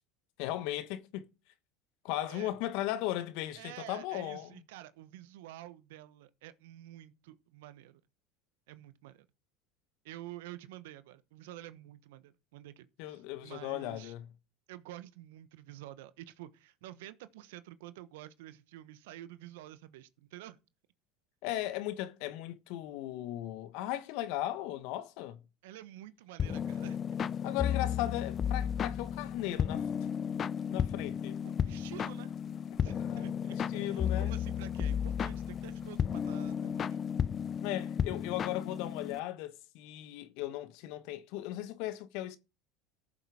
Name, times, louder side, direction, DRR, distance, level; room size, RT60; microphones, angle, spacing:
voice 1, 0.4-1.3 2.0-4.5 13.0-14.3 21.4-25.4 27.4-30.1 30.7-31.4 32.8-34.4 37.6-42.4, left 14 dB, 65° left, 1.2 m, -37 dB
voice 2, 3.6-8.0 8.7-9.3 10.0-14.1 14.7-20.6 25.6-27.3 31.4-32.3 32.8-37.0, right 14 dB, 70° right, 1.0 m, -49 dB
sound 1, 26.4-39.2, left 8 dB, 35° left, 0.6 m, -33 dB
14.0 x 7.4 x 4.9 m
hypercardioid pair, 80°, 0 cm